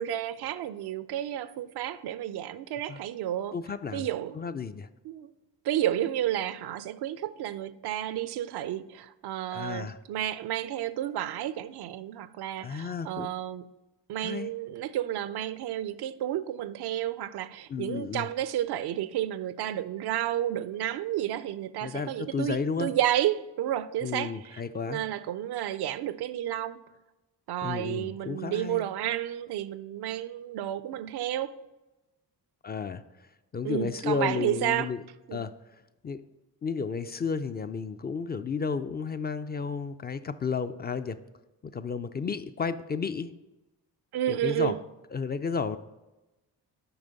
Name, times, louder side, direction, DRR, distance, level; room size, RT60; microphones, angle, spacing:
voice 1, 0.0-3.5 3.9-4.4 5.0-5.3 5.6-13.7 14.1-24.6 24.9-26.8 27.5-31.5 33.6-34.9 35.3-35.5 44.1-44.8, right 12 dB, 65° right, 0.5 m, -31 dB
voice 2, 3.5-4.1 4.3-4.9 9.5-10.0 12.6-13.3 14.2-14.5 17.7-18.3 21.8-22.9 24.0-25.0 27.6-28.9 32.6-33.0 33.5-35.0 35.3-35.5 36.0-36.2 36.6-41.2 41.6-43.3 44.3-44.8 45.1-45.8, left 5 dB, 25° left, 0.3 m, -32 dB
7.1 x 5.0 x 3.9 m
supercardioid pair, 50°, 43 cm